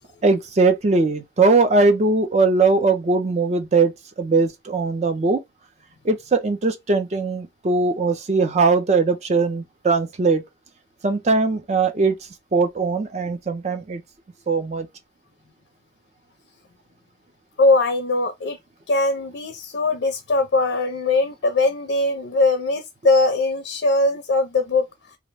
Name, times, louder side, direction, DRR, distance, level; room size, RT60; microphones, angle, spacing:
voice 1, 0.2-3.9 4.2-5.4 6.0-10.4 11.0-12.2 12.5-14.0 14.5-14.9, right 3 dB, 35° right, 0.4 m, -20 dB
voice 2, 17.6-18.6 18.9-24.9, left 2 dB, 60° left, 0.4 m, -20 dB
2.4 x 2.1 x 3.2 m
head